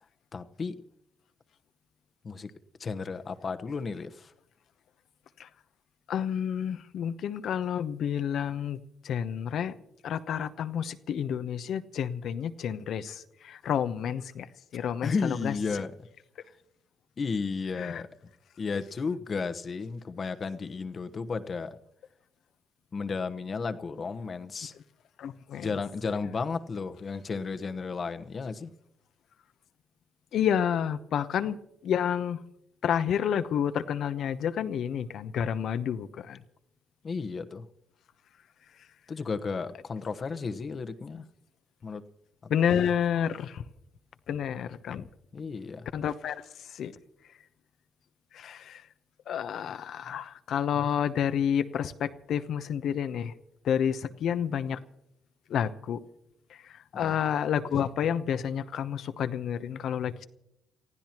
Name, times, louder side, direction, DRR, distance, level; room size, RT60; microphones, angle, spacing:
voice 1, 0.3-0.7 2.2-2.5 2.8-4.3 14.8-15.9 17.2-18.1 18.6-21.8 22.9-24.7 25.6-28.7 37.0-37.7 39.1-41.3 41.8-42.0 45.3-45.9 50.1-50.2 56.9-57.2, left 4 dB, 45° left, 10 dB, 1.1 m, -33 dB
voice 2, 6.1-8.8 9.0-9.7 10.0-14.5 14.7-15.5 17.8-18.0 25.2-25.7 30.3-31.6 31.8-32.4 32.8-36.4 42.5-43.6 44.3-45.1 45.9-46.3 46.7-46.9 48.3-48.8 49.3-53.3 53.6-54.8 55.5-56.0 56.9-60.3, left 8 dB, 70° left, 11 dB, 0.9 m, -29 dB
29.0 x 15.5 x 3.0 m, 0.80 s
hypercardioid pair, 55°, 0 cm